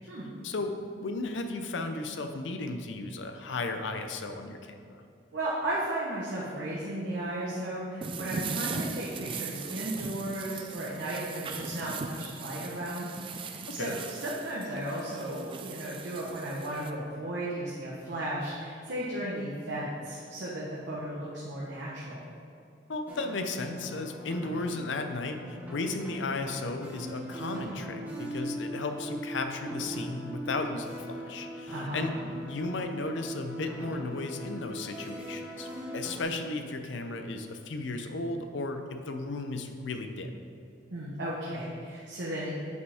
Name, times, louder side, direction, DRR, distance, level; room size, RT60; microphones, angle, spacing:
voice 1, 0.4-4.9 13.7-14.0 22.9-35.7 35.9-40.3, left 3 dB, 85° left, 6 dB, 0.6 m, -35 dB
voice 2, 5.3-22.2 31.7-32.1 40.9-42.5, right 1 dB, 75° right, -6 dB, 1.1 m, -35 dB
sound 1, 8.0-16.9, right 4 dB, 30° right, 0.3 m, -39 dB
sound 2, 23.1-36.2, right 1 dB, 10° right, 1.0 m, -40 dB
8.1 x 5.0 x 3.5 m, 2.5 s
head